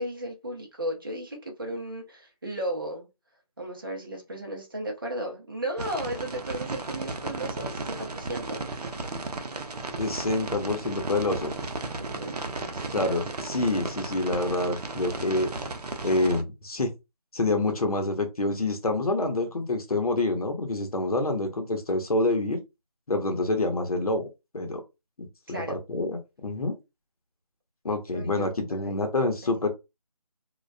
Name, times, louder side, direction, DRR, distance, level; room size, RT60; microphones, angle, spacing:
voice 1, 0.0-3.1 3.6-8.9 12.0-12.4 12.6-13.2 25.5-25.8 28.1-28.9, right 1 dB, 35° right, 0.6 m, -35 dB
sound 1, 5.8-16.4, right 3 dB, 80° right, 0.6 m, -35 dB
voice 2, 10.0-11.5 12.9-15.5 16.0-16.9 17.3-22.6 23.1-24.3 24.5-24.8 25.2-26.8 27.8-29.7, left 2 dB, 65° left, 0.8 m, -27 dB
2.3 x 2.1 x 2.5 m
figure-of-eight pair, 170°, 20 cm